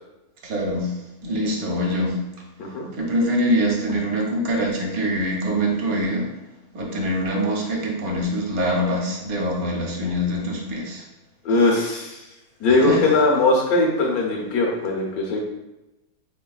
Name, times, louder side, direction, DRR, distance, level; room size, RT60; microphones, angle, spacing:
voice 1, 0.4-0.9 1.2-2.2 2.9-6.3 6.7-11.0 12.7-13.2, equal, 70° right, -1 dB, 1.2 m, -24 dB
voice 2, 11.4-12.2 12.6-15.4, left 2 dB, 70° left, -1 dB, 1.3 m, -20 dB
4.1 x 3.0 x 2.3 m, 0.98 s
omnidirectional pair, 1.6 m